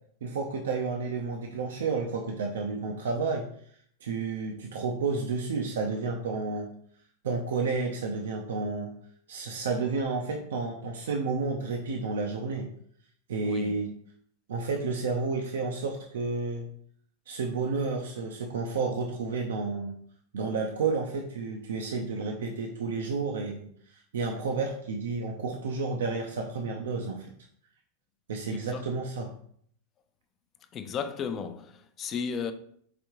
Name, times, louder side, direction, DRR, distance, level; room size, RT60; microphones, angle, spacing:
voice 1, 0.2-3.5 4.0-6.7 7.2-8.9 9.3-12.7 13.3-13.9 14.5-16.7 17.3-19.9 20.3-27.3 28.3-29.3, right 4 dB, 85° right, 0.6 m, -31 dB
voice 2, 13.4-13.8 28.5-28.8 30.7-32.5, left 6 dB, 30° left, 0.5 m, -34 dB
5.0 x 3.5 x 3.0 m
hypercardioid pair, 125°, 0 cm